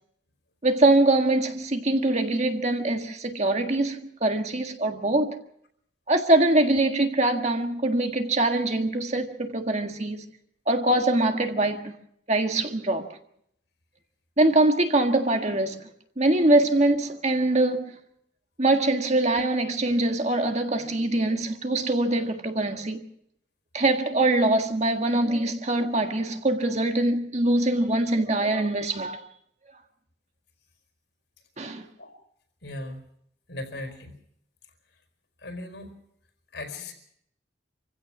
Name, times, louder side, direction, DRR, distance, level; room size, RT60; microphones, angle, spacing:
voice 1, 0.6-5.4 6.1-10.2 10.7-11.9 12.3-13.1 14.4-15.8 16.2-18.0 18.6-23.0 23.7-29.2 31.6-31.8, right 2 dB, 35° right, 1.7 m, -23 dB
voice 2, 32.6-33.0 33.5-34.1 35.4-35.9 36.5-36.9, left 2 dB, 70° left, 4.8 m, -37 dB
27.5 x 16.0 x 6.1 m
head